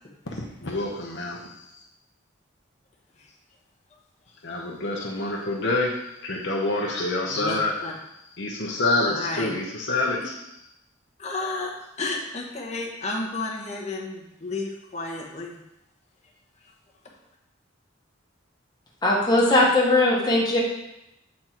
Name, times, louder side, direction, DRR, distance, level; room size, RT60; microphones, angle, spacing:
voice 1, 0.3-1.4 4.4-5.9 6.2-7.7 8.4-10.4, left 2 dB, 60° left, -1 dB, 1.0 m, -27 dB
voice 2, 7.3-7.9 9.1-9.5 10.2-10.3 11.2-15.5, left 2 dB, 35° left, -1 dB, 1.2 m, -32 dB
voice 3, 19.0-20.6, left 2 dB, 20° left, -4 dB, 1.4 m, -19 dB
7.5 x 4.3 x 4.5 m, 0.86 s
head